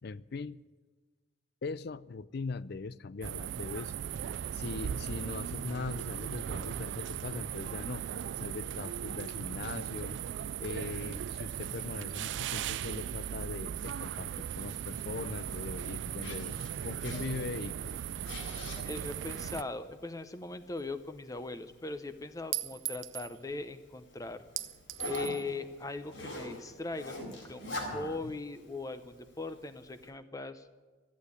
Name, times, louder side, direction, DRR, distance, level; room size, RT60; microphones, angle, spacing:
voice 1, 0.0-0.6 1.6-3.9 4.5-8.1 8.4-10.2 10.6-18.0 27.9-28.3, left 4 dB, 55° left, 0.4 m, -40 dB
sound 1, 3.2-19.6, right 9 dB, 65° right, 0.3 m, -38 dB
Zipper (clothing), 13.6-30.1, left 1 dB, 80° left, 4.3 m, -47 dB
voice 2, 18.9-24.4 25.0-30.7, left 3 dB, 20° left, 0.7 m, -40 dB
Chink clink, 20.8-20.9 22.5-23.3 24.6-25.4, right 15 dB, 85° right, 0.8 m, -38 dB
14.0 x 8.4 x 9.7 m
head